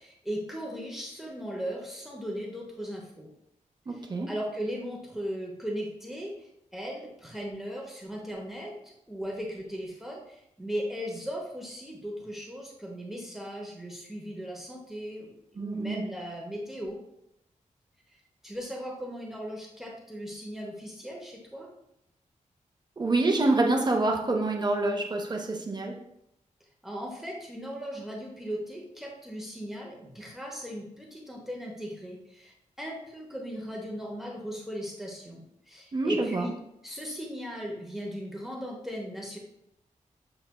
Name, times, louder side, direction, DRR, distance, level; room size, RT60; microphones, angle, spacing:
voice 1, 0.0-3.3 3.9-17.0 18.1-21.7 26.8-36.5 36.8-39.4, equal, 5° right, -2 dB, 0.7 m, -37 dB
voice 2, 3.9-4.3 15.6-16.0 23.0-26.0 35.9-36.5, right 2 dB, 30° right, 2 dB, 0.5 m, -26 dB
6.8 x 3.1 x 2.2 m, 0.79 s
wide cardioid pair, 135°, 14 cm